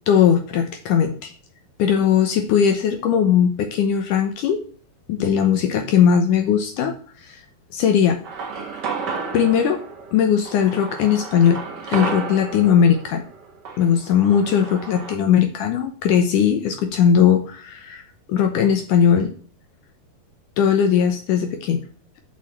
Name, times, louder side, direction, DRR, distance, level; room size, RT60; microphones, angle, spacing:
voice 1, 0.1-1.3 1.8-4.6 5.1-7.4 7.7-8.2 9.3-9.9 10.1-11.6 11.9-13.2 13.8-18.0 18.3-19.3 20.6-21.8, left 8 dB, 70° left, 6 dB, 2.1 m, -19 dB
sound 1, 8.2-15.1, right 5 dB, 85° right, 0.9 m, -32 dB
6.3 x 6.2 x 7.4 m, 0.42 s
omnidirectional pair, 4.3 m